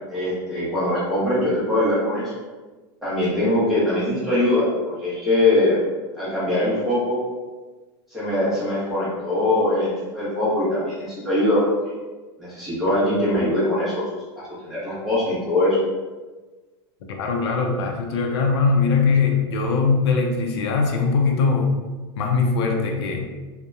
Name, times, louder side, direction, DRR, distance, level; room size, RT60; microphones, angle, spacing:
voice 1, 0.1-2.3 3.0-5.8 6.1-7.2 8.1-11.9 12.4-14.0 14.6-15.8, left 1 dB, ahead, -11 dB, 0.7 m, -22 dB
voice 2, 17.1-21.7 22.2-23.3, left 4 dB, 85° left, 2 dB, 0.4 m, -21 dB
2.8 x 2.0 x 2.3 m, 1.3 s
supercardioid pair, 180°, 14 cm